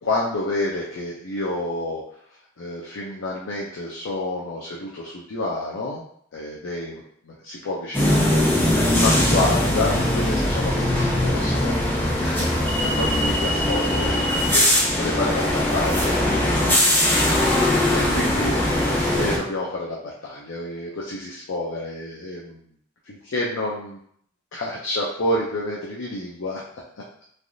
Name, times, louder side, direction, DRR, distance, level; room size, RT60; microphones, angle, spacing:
voice 1, 0.0-2.0 2.6-6.0 6.3-8.5 8.9-14.2 14.5-14.6 15.0-15.3 15.7-16.2 17.5-22.6 23.1-24.0 24.5-26.6, left 2 dB, 65° left, -4 dB, 0.5 m, -29 dB
sound 1, 7.9-19.4, left 1 dB, 10° left, 0.5 m, -20 dB
3.3 x 2.4 x 2.6 m, 0.65 s
head